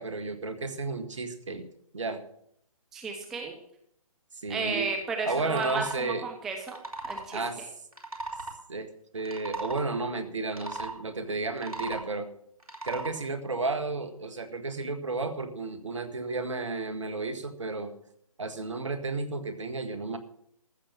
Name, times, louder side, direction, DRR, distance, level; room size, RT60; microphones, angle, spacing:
voice 1, 0.0-1.7 1.9-2.2 4.4-4.9 5.3-6.2 7.3-7.7 8.7-12.3 12.8-17.9 18.4-20.2, right 3 dB, 60° right, 9 dB, 1.7 m, -32 dB
voice 2, 2.9-3.5 4.5-6.8 7.0-7.4, right 4 dB, ahead, 2 dB, 0.5 m, -33 dB
sound 1, 5.6-6.0 6.6-7.3 7.9-8.6 9.2-9.9 10.5-10.9 11.5-12.1 12.6-13.1, right 2 dB, 85° right, 3.0 m, -37 dB
14.5 x 6.8 x 7.4 m, 0.70 s
figure-of-eight pair, 145°, 18 cm